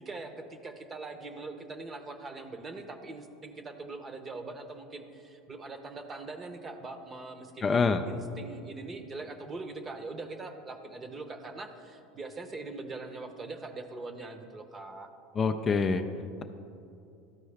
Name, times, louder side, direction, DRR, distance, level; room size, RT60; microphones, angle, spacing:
voice 1, 0.0-15.1, right 3 dB, 25° right, 7 dB, 0.8 m, -42 dB
voice 2, 7.6-8.0 15.4-16.0, left 4 dB, 30° left, 7 dB, 0.4 m, -25 dB
13.0 x 4.5 x 3.4 m, 2.7 s
supercardioid pair, 105°, 0 cm